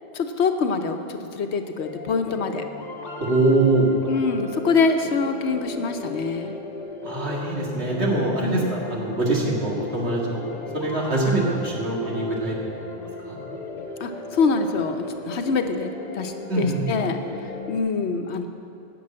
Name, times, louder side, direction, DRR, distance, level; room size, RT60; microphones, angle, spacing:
voice 1, 0.1-2.6 4.1-6.6 8.4-8.7 14.0-17.2 17.7-18.5, left 4 dB, 90° left, 6 dB, 1.1 m, -25 dB
sound 1, 1.8-17.8, left 2 dB, 45° left, 1.1 m, -36 dB
voice 2, 3.2-3.9 7.0-10.4 10.7-12.7 13.2-13.4 16.5-16.8, right 2 dB, 80° right, -3 dB, 2.3 m, -23 dB
11.0 x 7.0 x 8.6 m, 2.7 s
omnidirectional pair, 1.1 m